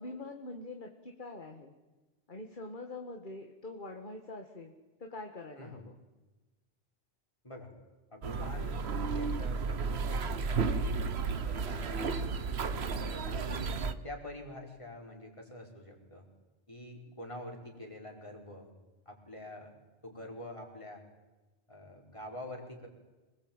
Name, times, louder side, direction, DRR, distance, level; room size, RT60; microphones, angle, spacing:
voice 1, 0.0-1.7 2.3-4.7 5.0-5.9, left 2 dB, 50° left, 4 dB, 2.0 m, -44 dB
voice 2, 5.6-5.9 7.4-7.7 8.1-12.6 13.2-16.3 16.7-18.7 19.1-19.7 20.0-21.0 21.7-22.9, left 1 dB, 30° left, 1 dB, 5.2 m, -46 dB
sound 1, 8.2-13.9, right 4 dB, 85° right, 1.3 m, -33 dB
27.0 x 20.0 x 9.0 m, 1.2 s
omnidirectional pair, 1.0 m